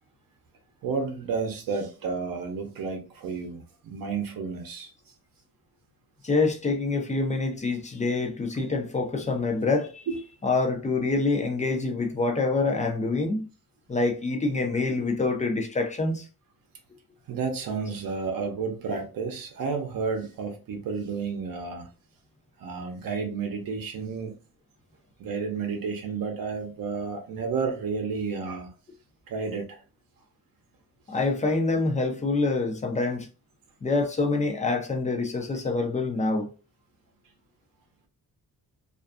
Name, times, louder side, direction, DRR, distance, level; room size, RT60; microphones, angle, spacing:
voice 1, 0.8-4.9 10.1-10.2 17.3-21.9 22.6-24.3 25.2-28.7 29.3-29.8, right 5 dB, 65° right, 0.7 m, -31 dB
voice 2, 6.2-10.1 10.4-13.5 13.9-16.3 31.1-33.3 33.8-36.5, left 3 dB, 20° left, 0.4 m, -26 dB
2.5 x 2.4 x 2.3 m
wide cardioid pair, 150°, 37 cm